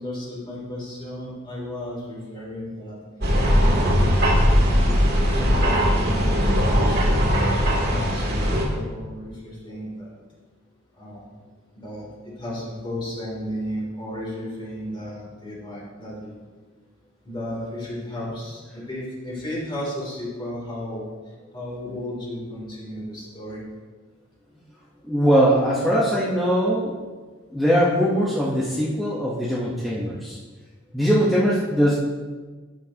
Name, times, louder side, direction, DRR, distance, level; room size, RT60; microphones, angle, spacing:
voice 1, 0.0-2.9 3.4-7.2 7.8-10.1 11.0-11.3 11.7-16.3 17.2-21.1 21.5-23.7, left 1 dB, 25° left, -5 dB, 2.9 m, -34 dB
sound 1, 3.2-8.6, equal, 55° right, 2.0 m, -19 dB
voice 2, 25.1-26.9 27.5-30.4 30.9-31.9, equal, ahead, -7 dB, 1.0 m, -21 dB
12.0 x 7.2 x 2.9 m, 1.4 s
head